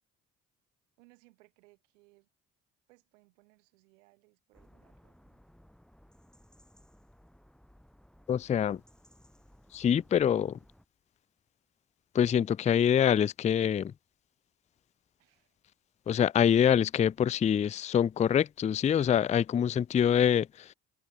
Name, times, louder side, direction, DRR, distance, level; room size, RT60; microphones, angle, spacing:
voice 1, 1.0-2.3 2.9-5.4 15.2-15.6, right 23 dB, 90° right, 5.9 m, -64 dB
sound 1, 4.5-10.9, equal, ahead, 2.5 m, -60 dB
voice 2, 8.3-8.8 9.7-10.6 12.1-13.9 16.1-20.7, left 9 dB, 20° left, 0.3 m, -25 dB
hypercardioid pair, 60°, 36 cm